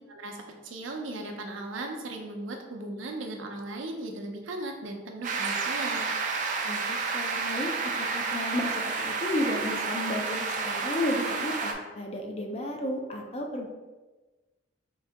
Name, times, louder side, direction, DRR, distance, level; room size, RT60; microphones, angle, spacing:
voice 1, 0.6-6.1, right 2 dB, 90° right, 3 dB, 0.6 m, -37 dB
sound 1, 5.2-11.7, right 4 dB, 40° right, 0.4 m, -30 dB
voice 2, 6.6-13.7, left 1 dB, 35° left, 2 dB, 0.5 m, -33 dB
3.8 x 2.7 x 3.4 m, 1.2 s
head